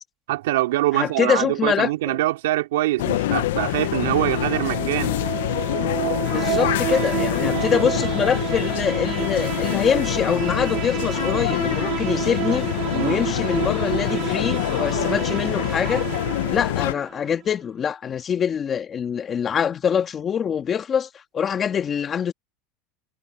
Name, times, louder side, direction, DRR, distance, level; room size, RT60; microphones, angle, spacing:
voice 1, 0.3-5.2 7.5-7.6 12.9-13.2, right 17 dB, 85° right, 3.1 m, -24 dB
voice 2, 0.9-2.2 6.3-12.7 13.0-16.0 16.5-21.1 21.3-22.3, left 7 dB, 25° left, 1.9 m, -24 dB
sound 1, 3.0-16.9, left 15 dB, 85° left, 0.8 m, -25 dB
sound 2, 4.3-17.3, right 15 dB, 45° right, 1.0 m, -30 dB
supercardioid pair, 135°, 0 cm